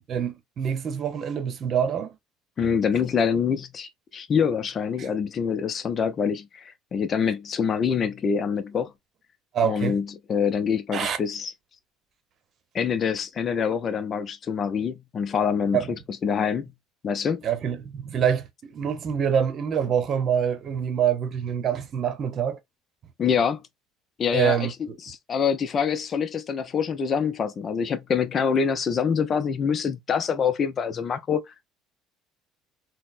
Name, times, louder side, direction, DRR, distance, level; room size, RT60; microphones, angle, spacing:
voice 1, 0.0-2.1 5.0-5.1 9.5-10.0 10.9-11.2 15.7-15.9 17.4-22.6 24.3-24.7, right 8 dB, 50° right, 0.8 m, -25 dB
voice 2, 2.6-8.9 9.6-11.5 12.7-15.8 16.2-16.7 17.0-17.4 23.2-23.6 24.2-31.4, left 6 dB, 45° left, 0.5 m, -25 dB
4.0 x 2.1 x 2.5 m
supercardioid pair, 75°, 0 cm